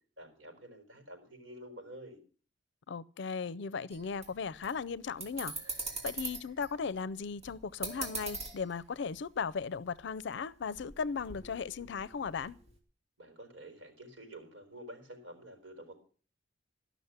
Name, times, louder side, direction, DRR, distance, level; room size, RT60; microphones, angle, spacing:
voice 1, 0.2-2.2 13.2-16.0, right 1 dB, 85° right, 5.0 m, -49 dB
voice 2, 2.9-5.5 6.0-12.6, left 5 dB, 65° left, 0.5 m, -37 dB
sound 1, 3.9-9.8 10.0-10.3 10.6-12.8, right 3 dB, 35° right, 2.8 m, -42 dB
13.5 x 6.1 x 8.0 m
head